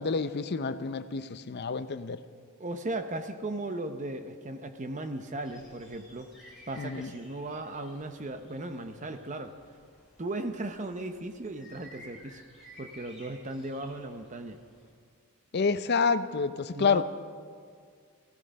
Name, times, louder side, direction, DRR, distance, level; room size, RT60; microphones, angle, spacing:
voice 1, 0.0-2.2 6.8-7.1 15.5-17.0, left 5 dB, 45° left, 12 dB, 0.5 m, -28 dB
voice 2, 2.6-6.3 6.7-9.5 10.2-12.5 12.8-14.6 16.7-17.0, right 2 dB, 35° right, 8 dB, 0.8 m, -37 dB
sound 1, 5.4-14.9, equal, ahead, 4.6 m, -55 dB
15.5 x 13.5 x 5.3 m, 2.1 s
head